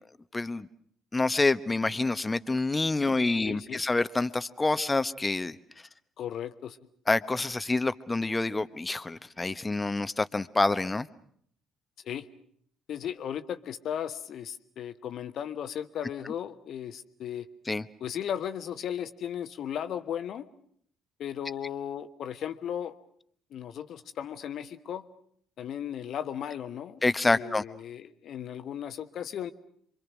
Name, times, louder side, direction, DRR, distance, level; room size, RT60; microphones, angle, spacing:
voice 1, 0.3-0.7 1.1-5.6 7.1-11.1 17.7-17.8 27.0-27.6, left 3 dB, 20° left, 14 dB, 1.1 m, -27 dB
voice 2, 3.4-3.8 6.2-6.8 12.0-12.3 12.9-17.5 18.0-20.5 21.2-22.9 23.5-25.0 25.6-27.0 27.3-29.5, left 9 dB, 55° left, 11 dB, 1.2 m, -36 dB
27.5 x 24.5 x 6.3 m, 0.65 s
figure-of-eight pair, 50°, 0 cm